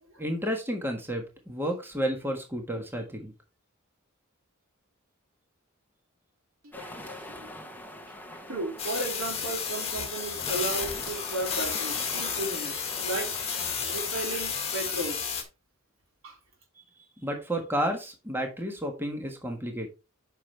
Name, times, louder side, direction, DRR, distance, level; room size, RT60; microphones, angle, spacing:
voice 1, 0.2-3.3 17.2-19.9, equal, 10° right, 1.5 m, -31 dB
voice 2, 6.6-7.5 8.5-13.3 13.9-15.4 16.2-16.4, right 2 dB, 70° right, 4.1 m, -35 dB
sound 1, 6.7-14.4, left 1 dB, 10° left, 1.0 m, -44 dB
sound 2, 8.8-15.4, left 6 dB, 30° left, 1.8 m, -32 dB
8.6 x 5.9 x 3.3 m
head